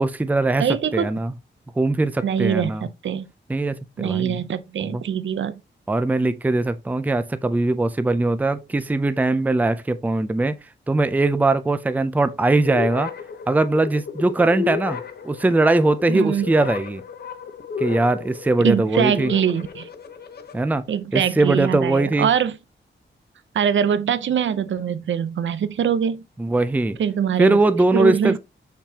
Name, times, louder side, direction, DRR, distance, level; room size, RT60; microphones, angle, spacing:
voice 1, 0.0-0.6 0.9-1.3 1.8-2.9 3.5-4.4 4.8-5.0 5.9-10.6 10.9-13.1 13.5-15.0 15.2-17.0 17.8-19.3 20.5-20.8 21.1-22.3 26.4-27.0 27.4-28.4, right 2 dB, 10° right, 0.4 m, -20 dB
voice 2, 0.6-1.1 2.2-3.2 4.0-5.6 16.1-16.5 18.6-19.9 20.9-22.6 23.5-26.2 27.0-27.6 27.9-28.4, right 8 dB, 75° right, 0.6 m, -23 dB
sound 1, 12.6-20.6, left 6 dB, 55° left, 0.8 m, -33 dB
6.5 x 5.8 x 2.8 m
wide cardioid pair, 170°, 20 cm